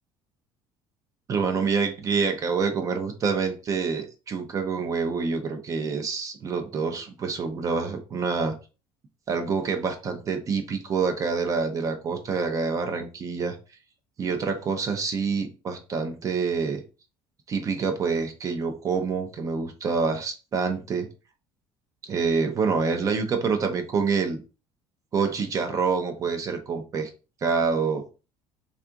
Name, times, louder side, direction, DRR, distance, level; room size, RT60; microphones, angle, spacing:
voice 1, 1.3-8.6 9.3-13.6 14.2-16.8 17.5-21.1 22.0-24.4 25.1-27.1 27.4-28.0, right 5 dB, 30° right, 6 dB, 0.6 m, -27 dB
2.8 x 2.4 x 3.4 m, 0.32 s
cardioid pair, 140°, 10 cm